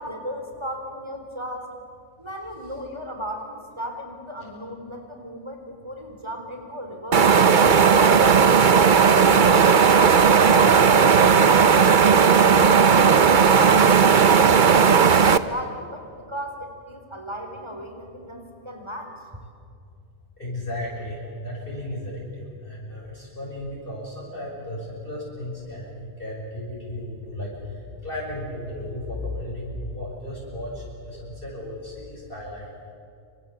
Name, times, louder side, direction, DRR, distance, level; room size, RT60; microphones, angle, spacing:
voice 1, 0.0-1.7 2.2-8.1 9.1-19.1, equal, 25° right, 4 dB, 4.1 m, -35 dB
sound 1, 7.1-15.4, right 6 dB, 50° right, 1.0 m, -15 dB
voice 2, 20.4-32.9, left 1 dB, 50° left, -4 dB, 6.7 m, -34 dB
27.5 x 26.5 x 7.8 m, 2.4 s
omnidirectional pair, 1.2 m